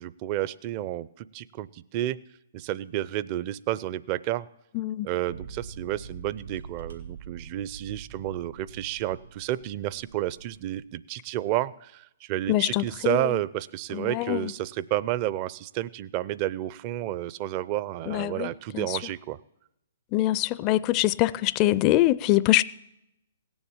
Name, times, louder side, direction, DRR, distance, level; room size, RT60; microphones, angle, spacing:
voice 1, 0.0-2.2 2.5-4.5 5.0-19.4, right 14 dB, 35° right, 0.5 m, -31 dB
voice 2, 4.8-5.1 12.5-13.2 13.9-14.4 18.1-18.5 18.7-18.9 20.1-22.6, left 16 dB, 30° left, 0.4 m, -23 dB
sound 1, 5.3-10.8, right 5 dB, 90° right, 3.2 m, -44 dB
17.5 x 7.1 x 8.7 m
hypercardioid pair, 130°, 0 cm